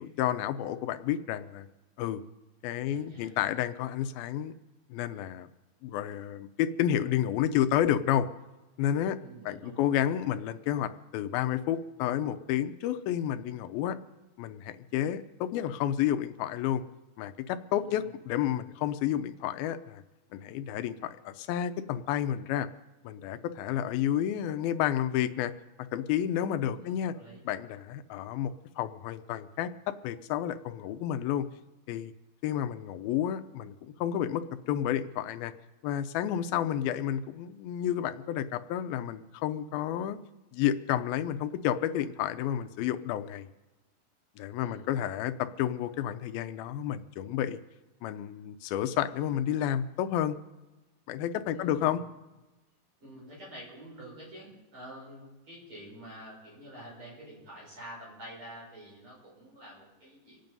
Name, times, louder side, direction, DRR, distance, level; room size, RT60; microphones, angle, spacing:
voice 1, 0.0-1.7 2.0-2.2 2.6-4.5 4.9-5.5 5.8-8.3 8.8-9.2 9.4-14.0 14.4-16.8 17.2-20.0 20.3-22.7 23.0-25.5 25.9-27.1 27.5-31.5 31.9-32.1 32.4-35.5 35.8-40.2 40.5-43.5 44.4-47.6 48.0-50.4 51.1-52.0, left 11 dB, 85° left, 10 dB, 2.5 m, -30 dB
voice 2, 2.7-3.3 9.2-9.8 17.8-18.1 26.7-27.4 44.6-45.0 51.5-52.0 53.0-60.4, equal, 35° right, -5 dB, 7.3 m, -48 dB
26.0 x 9.1 x 5.3 m, 1.1 s
omnidirectional pair, 4.2 m